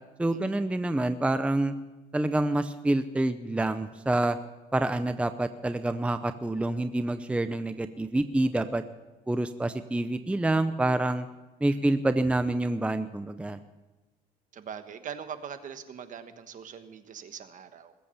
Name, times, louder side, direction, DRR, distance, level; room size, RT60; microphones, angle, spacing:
voice 1, 0.2-1.7 2.1-4.4 4.7-8.8 9.3-11.3 11.6-13.6, right 2 dB, 5° right, 11 dB, 0.6 m, -27 dB
voice 2, 14.5-17.9, right 7 dB, 50° right, 10 dB, 1.3 m, -42 dB
20.5 x 8.4 x 6.9 m, 1.1 s
cardioid pair, 110°, 17 cm